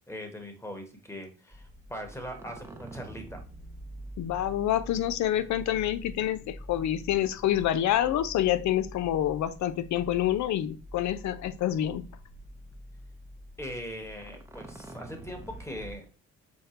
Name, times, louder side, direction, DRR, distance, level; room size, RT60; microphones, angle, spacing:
voice 1, 0.1-3.4 13.6-16.1, equal, 10° left, 1.2 m, -40 dB
sound 1, 1.5-16.0, equal, 10° right, 0.7 m, -46 dB
voice 2, 4.2-12.1, left 12 dB, 70° left, 0.5 m, -27 dB
5.4 x 2.1 x 4.3 m
cardioid pair, 90°, 30 cm